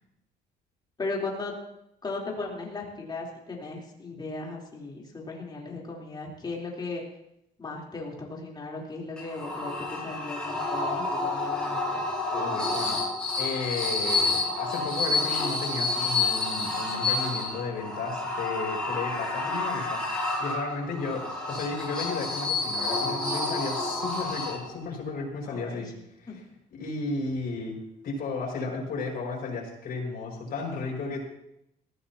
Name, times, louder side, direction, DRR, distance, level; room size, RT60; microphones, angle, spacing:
voice 1, 1.0-1.5 2.0-7.0 7.6-12.0 25.4-25.8 26.3-26.4, left 3 dB, 25° left, -2 dB, 3.9 m, -36 dB
sound 1, 9.2-24.9, left 3 dB, 5° left, 6.4 m, -29 dB
voice 2, 12.3-13.0 13.4-25.9 26.2-26.3 26.7-27.8 28.0-31.2, left 3 dB, 60° left, -2 dB, 6.0 m, -34 dB
19.5 x 15.0 x 3.0 m, 0.78 s
cardioid pair, 110°, 17 cm